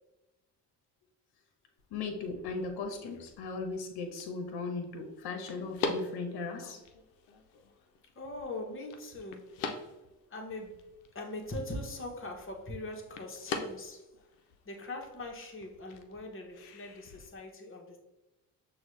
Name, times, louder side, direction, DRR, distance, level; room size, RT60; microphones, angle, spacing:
sound 1, 1.8-17.3, left 4 dB, 90° left, 0.6 m, -44 dB
voice 1, 1.9-6.8, left 4 dB, 65° left, 4 dB, 0.9 m, -37 dB
voice 2, 8.2-9.5 10.3-10.8 11.1-14.0 14.7-18.0, left 2 dB, 30° left, 1 dB, 1.1 m, -41 dB
6.1 x 2.4 x 3.1 m, 1.0 s
hypercardioid pair, 55°, 42 cm